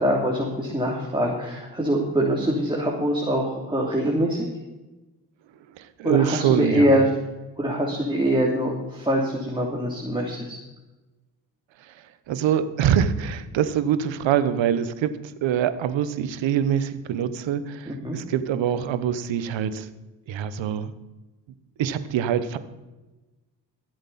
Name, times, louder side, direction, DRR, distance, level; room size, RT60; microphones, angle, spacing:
voice 1, 0.0-4.5 6.0-7.1 7.6-10.6 17.9-18.2, equal, 10° right, -3 dB, 3.1 m, -24 dB
voice 2, 5.8-7.0 11.8-19.9 20.3-20.9 21.8-22.6, right 9 dB, 80° right, 12 dB, 1.1 m, -24 dB
22.5 x 7.8 x 4.3 m, 1.1 s
supercardioid pair, 50°, 44 cm